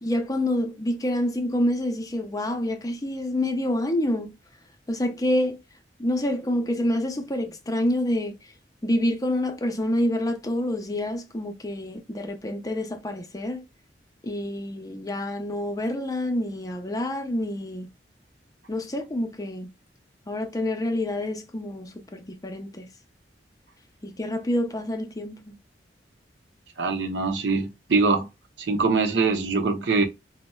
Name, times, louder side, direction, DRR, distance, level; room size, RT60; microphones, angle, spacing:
voice 1, 0.0-4.3 4.9-5.6 6.0-8.3 8.8-13.6 14.2-17.9 18.7-19.7 20.3-22.9 24.0-25.6, left 1 dB, 20° left, 0.5 m, -27 dB
voice 2, 26.8-28.3 28.6-30.0, right 4 dB, 85° right, 0.7 m, -23 dB
4.1 x 2.1 x 2.2 m
head